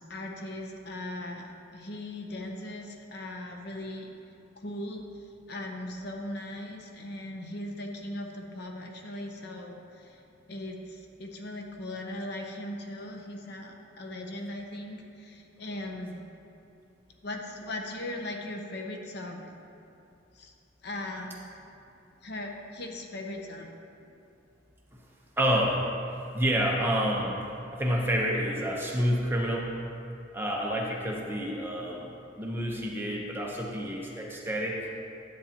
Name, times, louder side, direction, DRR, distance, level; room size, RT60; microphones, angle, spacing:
voice 1, 0.0-4.1 4.6-10.2 10.5-16.2 17.2-19.5 20.3-20.5 20.8-21.4 22.2-23.7, left 1 dB, 55° left, 2 dB, 0.7 m, -39 dB
voice 2, 25.4-25.8 26.3-27.4 27.7-29.7 30.3-32.1 32.4-34.8, equal, 10° right, -2 dB, 0.8 m, -28 dB
10.5 x 8.0 x 2.9 m, 2.7 s
head